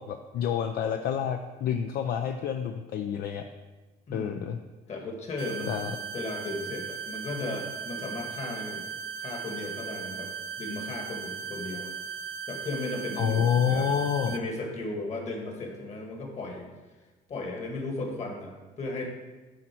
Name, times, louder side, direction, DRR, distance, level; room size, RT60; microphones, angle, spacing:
voice 1, 0.0-3.5 4.1-4.6 5.7-5.9 13.2-14.3, left 8 dB, 65° left, 6 dB, 0.5 m, -28 dB
voice 2, 4.1-4.4 4.9-8.8 9.2-10.3 10.6-11.9 12.5-13.9 14.2-16.7 17.3-19.1, left 2 dB, 40° left, 1 dB, 1.8 m, -36 dB
sound 1, 5.4-14.4, right 6 dB, 65° right, 0.6 m, -37 dB
10.5 x 4.3 x 4.5 m, 1.2 s
cardioid pair, 110°, 17 cm